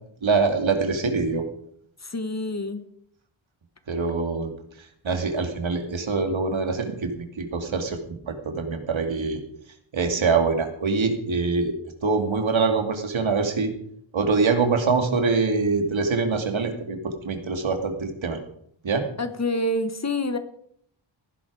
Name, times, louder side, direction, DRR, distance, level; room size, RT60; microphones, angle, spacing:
voice 1, 0.2-1.5 3.9-4.5 5.0-9.4 9.9-11.7 12.0-13.7 14.1-18.4 18.8-19.0, right 4 dB, 75° right, 5 dB, 2.5 m, -24 dB
voice 2, 2.0-2.8 19.2-20.4, left 1 dB, 35° left, 9 dB, 1.6 m, -27 dB
17.5 x 11.0 x 5.0 m, 0.67 s
wide cardioid pair, 75°, 47 cm